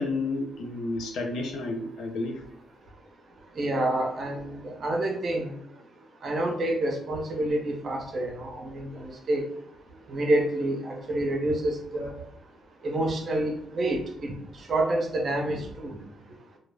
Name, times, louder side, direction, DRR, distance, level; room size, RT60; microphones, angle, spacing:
voice 1, 0.0-2.4, left 2 dB, 80° left, 2 dB, 0.6 m, -31 dB
voice 2, 3.6-5.5 6.2-9.4 10.1-12.1 12.8-14.3 14.7-16.0, right 1 dB, 45° right, 2 dB, 0.7 m, -28 dB
2.2 x 2.0 x 3.3 m, 0.71 s
cardioid pair, 90°, 0 cm